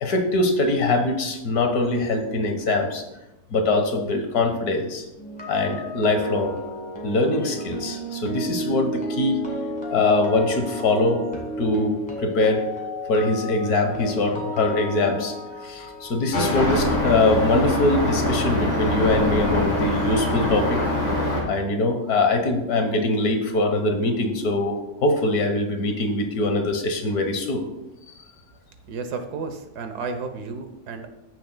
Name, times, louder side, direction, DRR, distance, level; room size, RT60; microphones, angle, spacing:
voice 1, 0.0-3.0 3.5-5.1 5.5-6.6 7.0-9.4 9.9-11.2 11.6-12.6 13.1-15.3 15.6-20.8 21.4-27.6, left 2 dB, 70° left, 5 dB, 1.7 m, -22 dB
sound 1, 5.2-19.2 19.5-19.8, equal, 15° left, 1.8 m, -34 dB
sound 2, 16.3-21.4, left 1 dB, 50° left, 3.0 m, -23 dB
voice 2, 28.9-31.1, right 4 dB, 85° right, 7 dB, 1.4 m, -32 dB
14.0 x 6.7 x 2.2 m, 0.94 s
omnidirectional pair, 1.7 m